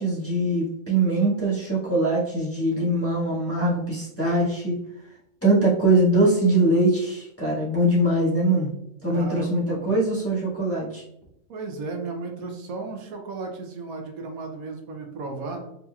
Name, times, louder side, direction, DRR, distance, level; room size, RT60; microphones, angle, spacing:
voice 1, 0.0-4.8 5.4-8.7 9.0-11.0, right 1 dB, 10° left, -7 dB, 1.3 m, -22 dB
voice 2, 9.1-9.9 11.5-15.6, right 3 dB, 80° right, 3 dB, 1.2 m, -34 dB
5.3 x 2.8 x 2.3 m, 0.78 s
omnidirectional pair, 1.4 m